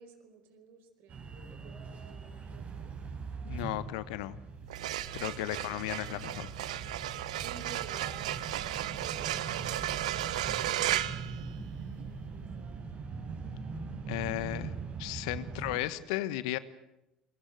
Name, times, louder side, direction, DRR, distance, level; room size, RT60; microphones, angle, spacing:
voice 1, 0.0-3.0 5.4-5.8 7.4-8.7 9.0-11.6 12.3-12.9 15.4-16.1, right 6 dB, 60° right, 8 dB, 4.9 m, -54 dB
sound 1, 1.1-15.8, right 4 dB, 40° right, 6.4 m, -42 dB
voice 2, 3.4-4.4 5.1-6.5 14.1-14.7 15.0-16.6, left 16 dB, 70° left, 15 dB, 1.3 m, -35 dB
sound 2, 4.6-12.1, right 13 dB, 75° right, 1.0 m, -35 dB
27.0 x 23.0 x 7.8 m, 0.90 s
figure-of-eight pair, 65°, 4 cm